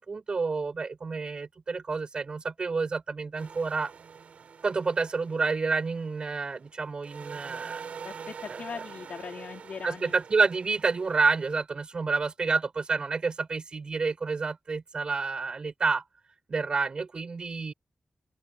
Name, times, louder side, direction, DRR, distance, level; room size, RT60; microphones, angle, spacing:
voice 1, 0.0-3.9 4.6-7.8 8.5-8.6 9.8-16.0 16.5-17.7, right 4 dB, 45° right, 4.2 m, -29 dB
sound 1, 3.4-6.7 7.0-11.6, right 6 dB, 90° right, 4.5 m, -45 dB
voice 2, 8.0-10.2, left 6 dB, 85° left, 3.8 m, -40 dB
open air
wide cardioid pair, 150°, 2 cm